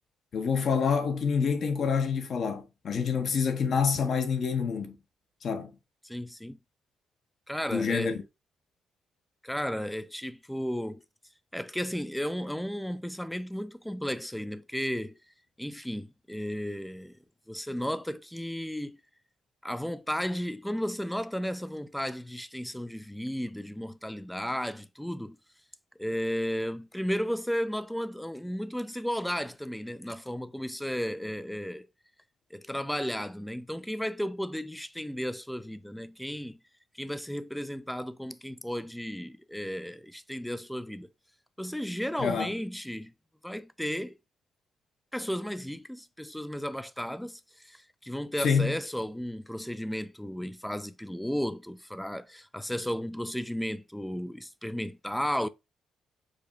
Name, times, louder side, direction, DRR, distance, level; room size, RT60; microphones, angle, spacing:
voice 1, 0.3-5.0 5.4-5.7 7.7-8.2 42.2-42.5 48.4-48.7, left 6 dB, 55° left, 1.0 m, -27 dB
voice 2, 6.0-6.6 7.5-8.2 9.4-11.0 11.5-15.2 15.6-17.2 17.5-19.0 19.6-25.4 26.0-31.9 32.5-36.6 37.0-41.1 41.6-43.1 43.4-44.2 45.1-55.5, equal, 5° left, 0.4 m, -34 dB
5.0 x 2.3 x 4.5 m
cardioid pair, 90°, 0 cm